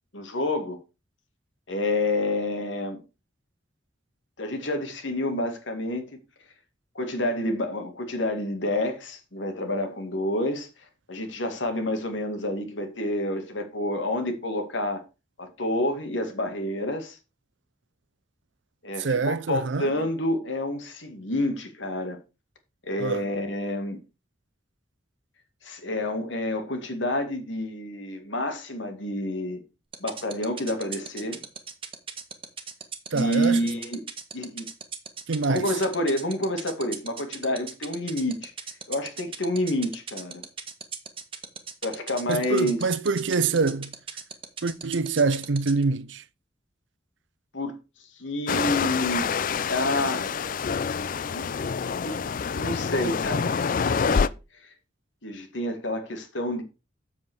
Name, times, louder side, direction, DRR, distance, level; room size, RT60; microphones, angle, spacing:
voice 1, 0.1-0.8 1.7-3.0 4.4-6.1 7.0-10.7 11.1-15.0 15.4-17.2 18.8-22.2 22.8-24.0 25.6-29.6 30.0-31.4 33.1-34.1 34.3-34.6 35.5-38.5 38.9-40.4 41.8-42.8 47.5-47.7 48.2-49.2 49.7-50.5 51.3-51.5 52.0-52.2 52.5-53.6 53.9-54.3 55.2-56.6, left 1 dB, 85° left, 2.3 m, -28 dB
voice 2, 19.0-20.0 23.0-23.3 33.1-33.6 35.3-35.8 42.3-43.9 44.6-46.2, right 4 dB, 75° right, 0.6 m, -25 dB
sound 1, 29.9-45.8, right 7 dB, 30° right, 1.3 m, -36 dB
sound 2, 48.5-54.3, left 6 dB, 45° left, 0.4 m, -26 dB
7.8 x 7.2 x 4.7 m
head